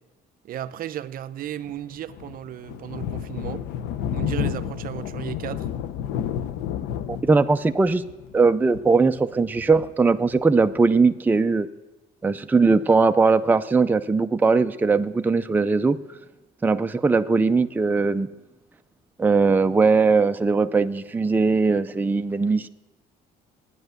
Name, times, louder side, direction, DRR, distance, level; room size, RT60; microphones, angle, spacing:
voice 1, 0.4-3.7 4.1-5.7, right 11 dB, 60° right, 0.6 m, -34 dB
Thunder, 1.6-10.8, left 9 dB, 90° left, 0.8 m, -31 dB
voice 2, 7.1-8.0 8.3-11.7 12.2-16.0 16.6-18.3 19.2-22.7, right 4 dB, 10° right, 0.5 m, -20 dB
13.5 x 9.9 x 8.0 m
cardioid pair, 110°, 17 cm